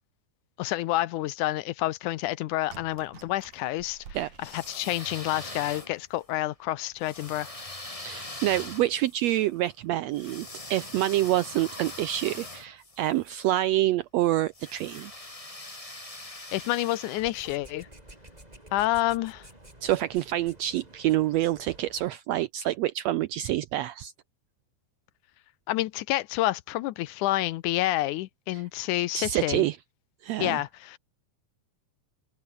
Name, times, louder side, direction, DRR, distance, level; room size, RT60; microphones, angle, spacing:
voice 1, 0.6-4.0 4.4-7.5 16.5-17.9 18.7-19.5 25.7-29.7 30.4-31.0, left 16 dB, 80° left, 2.1 m, -28 dB
sound 1, 2.7-5.2 5.8-5.9 6.2-6.3 6.9-7.2 7.6-7.8, right 6 dB, 60° right, 4.5 m, -50 dB
sound 2, 4.3-6.2 7.0-13.4 14.5-17.6, left 2 dB, 10° left, 2.2 m, -42 dB
voice 2, 8.0-15.1 19.8-24.1 29.1-29.8 30.2-30.6, right 14 dB, 90° right, 1.5 m, -27 dB
sound 3, 17.2-22.1, right 1 dB, 10° right, 5.6 m, -51 dB
omnidirectional pair, 3.7 m